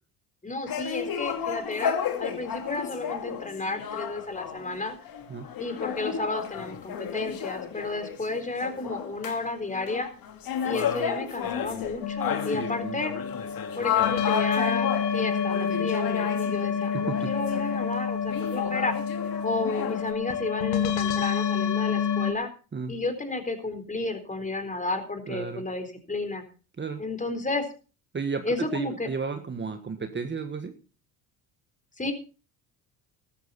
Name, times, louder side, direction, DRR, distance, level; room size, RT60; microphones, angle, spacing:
voice 1, 0.4-5.0 5.6-10.1 10.6-13.1 13.8-18.9 19.4-22.5 22.9-26.4 27.0-27.7 28.5-29.1 32.0-32.1, left 3 dB, 20° left, 7 dB, 4.0 m, -32 dB
sound 1, 0.7-9.4 9.7-17.9 18.3-20.1, left 8 dB, 55° left, 2.4 m, -33 dB
sound 2, 12.0-22.3, left 7 dB, 80° left, 2.1 m, -28 dB
voice 2, 12.5-13.0 16.9-17.3 22.7-22.9 25.3-25.6 26.8-27.0 28.1-30.7, right 5 dB, 25° right, 7 dB, 1.6 m, -33 dB
14.0 x 13.0 x 4.2 m, 0.36 s
supercardioid pair, 70°, 42 cm